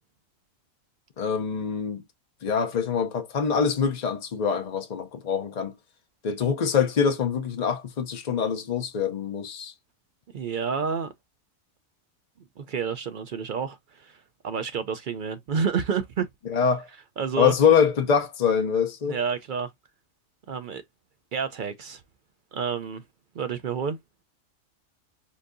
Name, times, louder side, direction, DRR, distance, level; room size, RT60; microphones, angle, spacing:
voice 1, 1.2-2.0 2.4-5.7 6.2-9.7 16.5-16.9 17.4-19.2, left 6 dB, 55° left, 0.4 m, -24 dB
voice 2, 10.3-11.1 12.6-16.3 17.2-17.5 19.0-19.7 20.5-20.8 21.3-22.0 22.5-23.0 23.3-24.0, right 6 dB, 65° right, 0.5 m, -29 dB
7.0 x 2.7 x 2.5 m
omnidirectional pair, 1.4 m